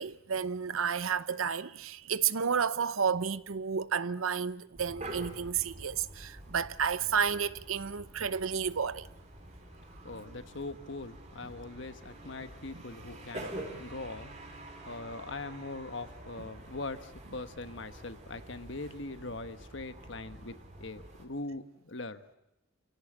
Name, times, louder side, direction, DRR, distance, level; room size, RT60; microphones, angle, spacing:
voice 1, 0.0-9.1, right 6 dB, 75° right, 0.8 m, -31 dB
sound 1, 4.7-21.3, right 1 dB, 35° right, 3.7 m, -47 dB
voice 2, 10.0-14.3 14.9-22.2, left 2 dB, 60° left, 1.3 m, -41 dB
28.0 x 17.0 x 8.8 m
head